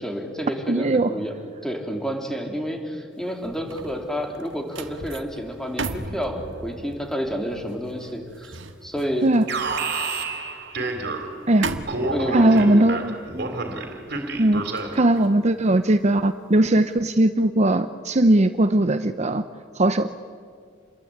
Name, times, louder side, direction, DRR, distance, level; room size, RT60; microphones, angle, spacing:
voice 1, 0.0-1.3 1.6-9.3 12.1-12.9, equal, 5° left, 2 dB, 3.4 m, -30 dB
voice 2, 0.7-1.1 9.2-9.4 11.5-11.7 12.3-13.1 14.4-14.6 14.9-19.4 19.7-20.1, right 1 dB, 40° right, 10 dB, 0.7 m, -19 dB
sound 1, 3.2-16.5 16.9-17.2, right 3 dB, 75° right, 1.7 m, -38 dB
Alarm, 9.5-11.5 11.9-15.1, right 3 dB, 60° right, 3.6 m, -29 dB
29.0 x 22.5 x 8.8 m, 2.2 s
head